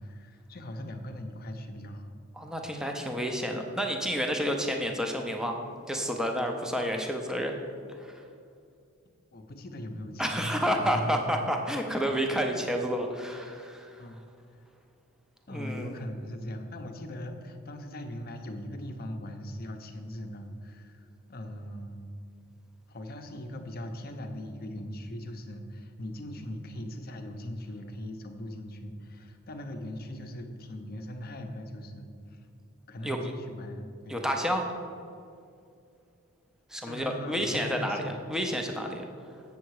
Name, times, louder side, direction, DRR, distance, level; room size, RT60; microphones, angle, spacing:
voice 1, 0.0-2.1 9.3-11.5 11.9-12.1 14.0-14.2 15.5-22.1 22.9-32.5 32.9-34.2 36.8-38.6, left 1 dB, 45° left, 5 dB, 0.7 m, -40 dB
voice 2, 2.4-5.6 5.9-7.5 8.0-8.2 10.2-14.1 15.5-15.9 33.0-33.2 34.1-34.7 36.7-39.0, equal, 5° right, 2 dB, 0.6 m, -30 dB
7.6 x 7.0 x 4.7 m, 2.4 s
head